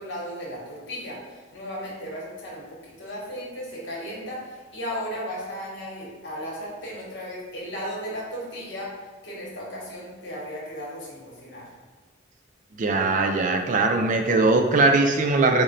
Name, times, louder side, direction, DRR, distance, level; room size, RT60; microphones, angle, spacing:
voice 1, 0.0-8.9 9.2-11.7, equal, 65° left, -3 dB, 1.1 m, -35 dB
voice 2, 12.7-15.6, right 3 dB, 45° right, 4 dB, 0.3 m, -20 dB
4.1 x 2.1 x 3.7 m, 1.4 s
head